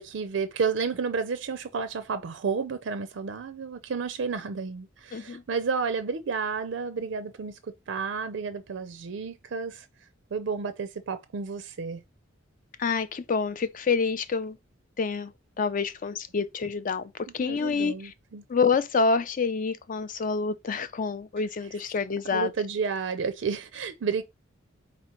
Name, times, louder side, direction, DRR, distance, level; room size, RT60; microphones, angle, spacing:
voice 1, 0.0-9.9 10.3-12.0 17.4-18.4 21.4-21.5 22.3-24.2, right 5 dB, 70° right, 0.4 m, -31 dB
voice 2, 5.1-5.4 12.8-14.6 15.0-15.3 15.6-17.9 18.5-22.5, left 5 dB, 40° left, 0.4 m, -27 dB
4.1 x 2.8 x 4.4 m
head